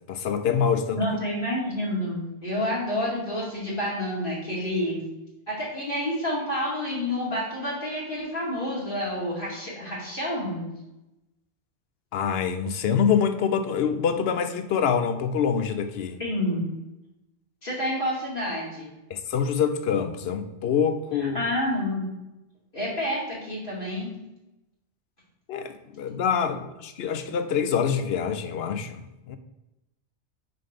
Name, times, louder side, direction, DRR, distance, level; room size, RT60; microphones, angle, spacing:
voice 1, 0.1-1.0 12.1-16.2 19.1-21.4 25.5-29.0 29.3-29.4, left 7 dB, 70° left, 9 dB, 0.8 m, -25 dB
voice 2, 1.0-5.0 5.5-10.7 16.2-16.6 17.6-18.9 21.2-22.1 22.7-24.1, left 1 dB, 50° left, -5 dB, 2.3 m, -29 dB
5.6 x 3.9 x 4.9 m, 0.94 s
omnidirectional pair, 1.1 m